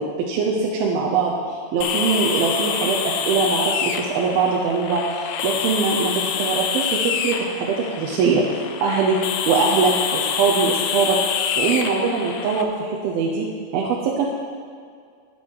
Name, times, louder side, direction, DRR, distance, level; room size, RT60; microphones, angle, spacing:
voice 1, 0.0-1.3 1.7-8.4 8.8-9.2 9.5-11.2 11.6-13.5 13.7-14.3, right 5 dB, 80° right, -2 dB, 2.8 m, -22 dB
sound 1, 1.8-12.6, left 7 dB, 80° left, 2.3 m, -26 dB
13.0 x 9.0 x 4.7 m, 2.1 s
omnidirectional pair, 4.3 m